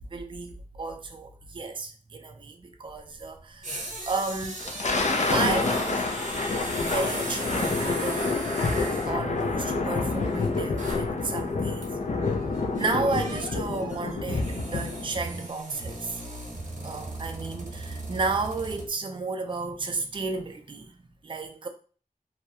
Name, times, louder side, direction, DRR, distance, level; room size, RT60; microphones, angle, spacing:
voice 1, 0.1-4.7 5.3-6.1 6.8-8.3 9.0-12.0 12.8-16.2 16.8-21.0 21.2-21.7, right 3 dB, 40° right, 0.4 m, -32 dB
sound 1, 2.9-3.0 3.4-11.2 11.5-11.6 11.8-18.9, right 2 dB, 65° right, 0.8 m, -38 dB
Thunder, 4.4-15.2, left 3 dB, 60° left, 0.4 m, -28 dB
2.3 x 2.0 x 2.7 m
wide cardioid pair, 70°, 14 cm